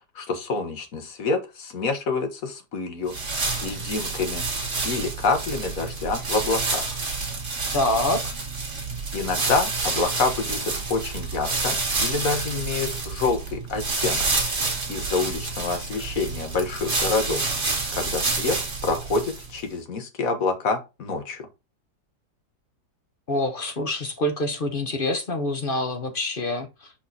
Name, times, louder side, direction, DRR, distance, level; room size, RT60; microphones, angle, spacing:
voice 1, 0.1-3.1 3.6-4.4 4.8-7.0 9.1-14.3 14.9-17.5 17.9-18.6 18.8-21.5, left 4 dB, 55° left, 1.6 m, -27 dB
sound 1, 3.1-19.6, right 3 dB, 45° right, 2.1 m, -28 dB
voice 2, 7.7-8.3 23.3-26.9, left 1 dB, 40° left, 0.9 m, -26 dB
5.4 x 4.6 x 4.1 m
omnidirectional pair, 1.8 m